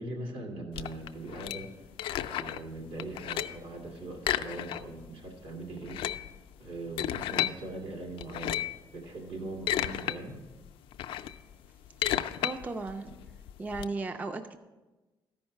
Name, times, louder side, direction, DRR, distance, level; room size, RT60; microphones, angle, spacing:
voice 1, 0.0-1.7 2.2-6.0 6.6-8.6 8.9-10.4, right 2 dB, 75° right, 0 dB, 2.4 m, -40 dB
sound 1, 0.7-2.7 3.0-3.7 4.2-5.1 5.3-5.4 5.8-7.6 8.2-8.8 9.3-10.2 10.5-13.9, left 12 dB, 85° left, 0.4 m, -33 dB
voice 2, 12.0-13.2 13.6-14.6, right 3 dB, 15° right, 9 dB, 0.4 m, -36 dB
13.5 x 5.4 x 5.7 m, 1.2 s
cardioid pair, 140°, 9 cm